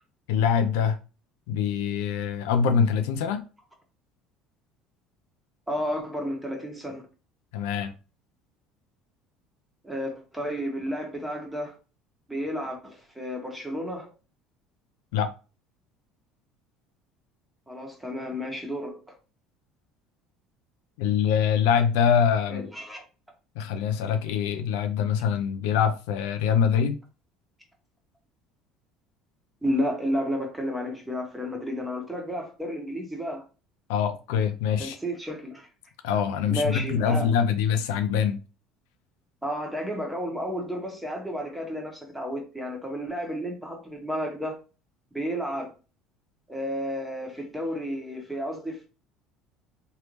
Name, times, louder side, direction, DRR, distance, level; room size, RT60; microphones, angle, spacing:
voice 1, 0.3-1.0 1.5-3.4 7.5-7.9 15.1-15.3 21.0-22.7 23.6-27.0 33.9-35.0 36.0-38.4, left 7 dB, 85° left, 0.5 m, -24 dB
voice 2, 5.7-7.1 9.8-11.8 12.3-14.1 17.7-19.2 22.5-23.0 29.6-33.4 34.8-35.7 36.5-37.3 39.4-44.6 45.1-45.7 46.5-48.9, equal, 5° right, 1.4 m, -32 dB
3.3 x 2.7 x 3.1 m
supercardioid pair, 90°, 0 cm